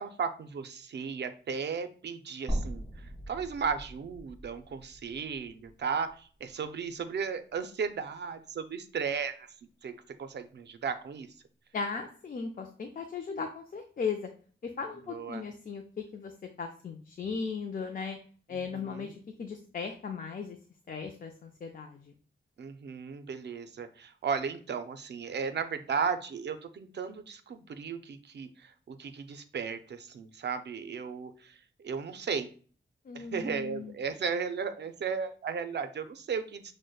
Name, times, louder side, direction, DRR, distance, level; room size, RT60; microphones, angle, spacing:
voice 1, 0.0-9.5 9.8-9.9 10.2-11.3 15.1-15.4 18.7-19.2 22.6-31.6 31.8-32.5 33.1-36.7, right 6 dB, 60° right, 9 dB, 0.4 m, -35 dB
sound 1, 2.5-6.6 7.0-7.1 8.5-8.6, right 1 dB, 15° right, 1.3 m, -39 dB
voice 2, 11.7-14.3 14.6-16.3 16.6-18.2 18.5-20.6 20.9-22.1 33.1-34.0, left 5 dB, 45° left, 4 dB, 0.4 m, -37 dB
6.2 x 2.1 x 2.2 m, 0.42 s
wide cardioid pair, 155°, 20 cm